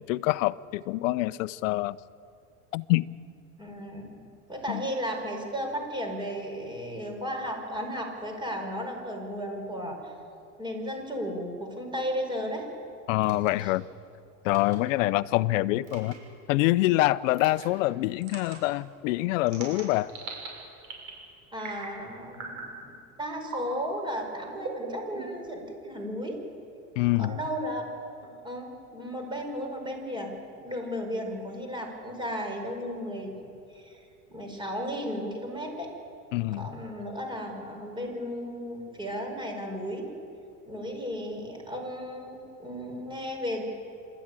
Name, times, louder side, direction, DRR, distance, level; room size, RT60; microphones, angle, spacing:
voice 1, 0.0-2.0 2.7-3.1 4.7-4.8 13.1-13.9 14.4-16.2 16.5-20.1 27.0-27.4 36.3-36.7, left 18 dB, 75° left, 0.8 m, -25 dB
voice 2, 3.6-4.2 4.5-10.1 10.6-12.6 13.6-13.7 21.5-26.4 27.2-27.8 28.2-30.3 30.6-35.9 36.5-40.1 40.7-43.6, equal, 10° right, 4.8 m, -35 dB
sound 1, 13.2-13.5 14.5-14.8 15.8-16.2 17.3-17.7 18.2-18.6 19.5-20.5 20.8-21.2 21.6-22.0 22.3-22.7 23.4-23.8 24.6-25.5, right 4 dB, 50° right, 6.9 m, -40 dB
27.0 x 13.5 x 9.0 m
supercardioid pair, 125°, 39 cm